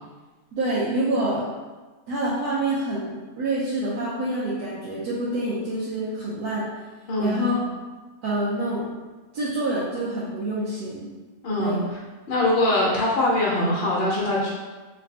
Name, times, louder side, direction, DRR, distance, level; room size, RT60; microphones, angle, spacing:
voice 1, 0.5-1.4 2.1-6.7 7.2-7.5 8.2-8.8 9.3-11.1 11.6-11.8, right 1 dB, 85° right, -7 dB, 1.3 m, -26 dB
voice 2, 7.1-7.4 11.4-11.8 12.3-14.5, left 2 dB, 50° left, -4 dB, 0.7 m, -22 dB
4.1 x 3.2 x 2.7 m, 1.3 s
omnidirectional pair, 1.6 m